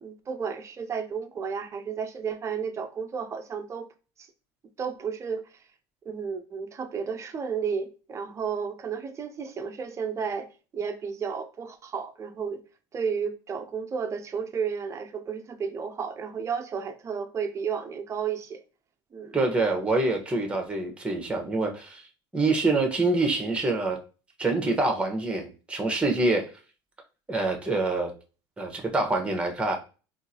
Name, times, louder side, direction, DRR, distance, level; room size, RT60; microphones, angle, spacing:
voice 1, 0.0-3.9 4.2-4.3 4.8-5.5 6.1-10.5 10.7-12.6 12.9-18.6 19.1-19.3, right 6 dB, 25° right, 0.5 m, -32 dB
voice 2, 19.3-22.0 22.3-24.0 24.4-26.5 27.3-28.1 28.6-29.8, right 2 dB, 10° right, 1.0 m, -26 dB
3.7 x 2.6 x 2.8 m
supercardioid pair, 100°, 11 cm